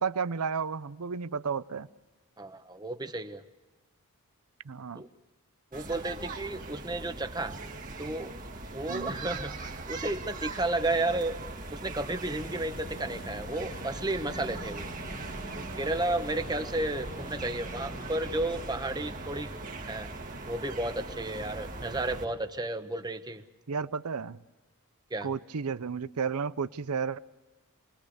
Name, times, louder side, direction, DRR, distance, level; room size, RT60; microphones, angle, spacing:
voice 1, 0.0-1.9 4.6-5.0 8.9-9.1 23.7-24.4 25.2-27.2, right 5 dB, 85° right, 16 dB, 0.7 m, -32 dB
voice 2, 2.4-3.4 5.0-5.1 5.7-7.6 8.0-8.3 8.7-11.4 11.7-14.9 15.6-19.6 19.9-20.1 20.5-23.4 25.1-25.3, right 2 dB, 20° right, 9 dB, 1.1 m, -32 dB
sound 1, 5.7-22.3, right 3 dB, 40° right, 1.9 m, -40 dB
sound 2, 12.4-19.1, left 1 dB, 40° left, 1.2 m, -46 dB
27.5 x 21.0 x 6.8 m, 1.2 s
head